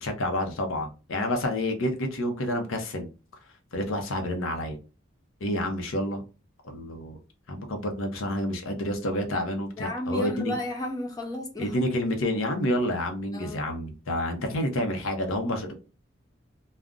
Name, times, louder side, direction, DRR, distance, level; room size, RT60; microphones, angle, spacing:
voice 1, 0.0-3.1 3.7-4.8 5.4-6.2 6.6-7.2 7.5-10.5 11.6-15.7, left 1 dB, 85° left, 0.6 m, -29 dB
voice 2, 9.8-11.8 13.3-13.7, left 1 dB, 20° left, 0.5 m, -33 dB
2.4 x 2.1 x 3.5 m
head